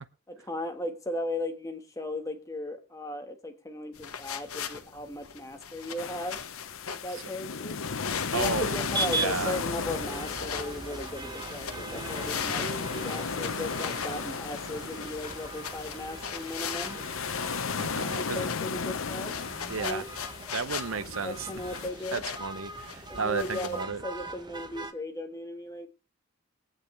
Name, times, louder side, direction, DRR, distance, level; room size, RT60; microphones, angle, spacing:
voice 1, 0.3-6.4 6.9-7.8 8.3-17.0 18.1-19.4 19.8-20.0 21.2-22.2 23.1-25.9, left 1 dB, 15° left, 1.4 m, -36 dB
sound 1, 3.9-23.8, left 7 dB, 90° left, 1.3 m, -40 dB
sound 2, 6.0-21.9, left 5 dB, 70° left, 0.8 m, -35 dB
voice 2, 8.3-8.7 9.1-9.6 17.8-18.5 19.7-20.0 20.5-21.6 22.1-24.0, right 5 dB, 70° right, 0.7 m, -33 dB
sound 3, 8.4-24.9, right 3 dB, 20° right, 0.9 m, -40 dB
22.0 x 9.0 x 3.2 m
head